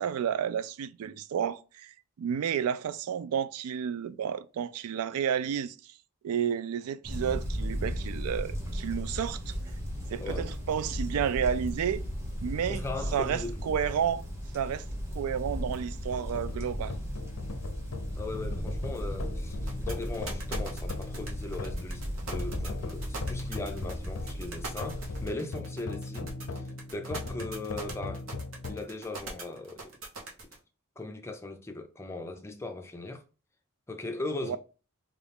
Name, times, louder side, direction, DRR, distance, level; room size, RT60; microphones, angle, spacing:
voice 1, 0.0-5.8 6.2-9.5 10.1-12.0 12.4-12.8 13.1-14.2 14.5-14.9 15.1-16.9 34.4-34.6, right 8 dB, 80° right, 0.3 m, -31 dB
sound 1, 7.0-25.3, equal, 10° right, 0.9 m, -36 dB
voice 2, 10.2-10.5 12.7-13.5 18.1-28.2 28.7-30.0 31.0-33.2 33.9-34.6, left 2 dB, 10° left, 0.4 m, -39 dB
sound 2, 16.1-28.9, left 3 dB, 80° left, 0.5 m, -40 dB
sound 3, 19.7-30.6, right 3 dB, 65° right, 1.1 m, -41 dB
3.9 x 2.3 x 3.4 m
head